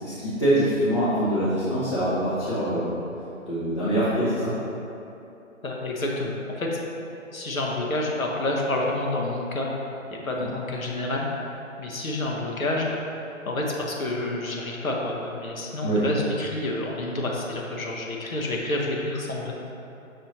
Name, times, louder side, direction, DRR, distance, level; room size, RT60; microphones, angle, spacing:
voice 1, 0.0-3.0 3.5-4.5 15.8-16.0, right 1 dB, 20° left, -13 dB, 0.5 m, -24 dB
voice 2, 5.6-6.8 7.3-12.9 13.5-19.5, left 2 dB, 85° left, -2 dB, 0.9 m, -29 dB
6.1 x 2.6 x 3.0 m, 2.9 s
figure-of-eight pair, 140°, 40 cm